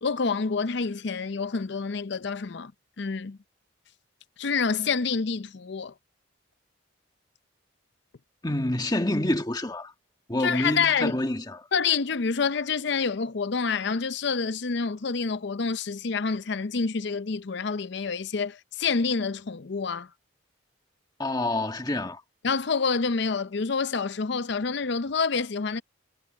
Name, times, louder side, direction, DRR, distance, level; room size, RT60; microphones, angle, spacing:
voice 1, 0.0-2.7 3.0-3.4 4.4-5.9 10.4-11.2 11.7-20.1 22.4-25.8, left 5 dB, 55° left, 0.6 m, -27 dB
voice 2, 8.4-9.9 10.3-11.7 21.2-22.2, left 1 dB, 20° left, 1.6 m, -27 dB
head